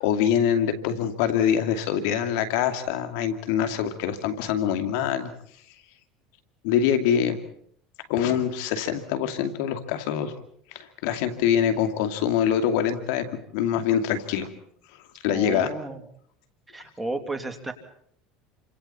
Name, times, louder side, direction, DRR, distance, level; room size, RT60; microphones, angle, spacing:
voice 1, 0.0-5.3 6.6-7.4 8.1-10.3 10.7-13.3 13.5-14.5 14.9-15.7, left 9 dB, 75° left, 8 dB, 2.3 m, -24 dB
voice 2, 15.3-16.0 16.7-17.7, right 2 dB, 10° right, 5 dB, 2.8 m, -33 dB
29.5 x 26.0 x 4.3 m, 0.64 s
supercardioid pair, 115°, 0 cm